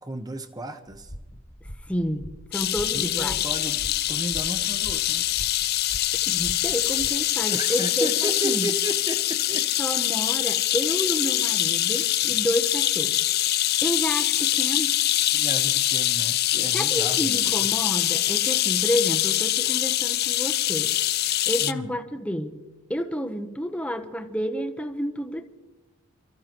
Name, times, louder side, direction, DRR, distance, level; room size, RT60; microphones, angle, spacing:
voice 1, 0.0-1.1 2.9-5.3 7.5-9.7 15.3-17.5 21.6-21.9, right 1 dB, 20° right, 8 dB, 0.9 m, -34 dB
sound 1, 0.9-7.1, equal, 30° left, 1.5 m, -42 dB
voice 2, 1.6-3.4 6.3-8.1 8.4-8.7 9.8-13.2 13.8-15.0 16.5-21.0 21.5-22.6 22.9-25.5, equal, 5° left, 6 dB, 0.9 m, -30 dB
sound 2, 2.5-21.7, left 14 dB, 45° left, 0.4 m, -24 dB
29.5 x 14.0 x 3.0 m, 1.1 s
head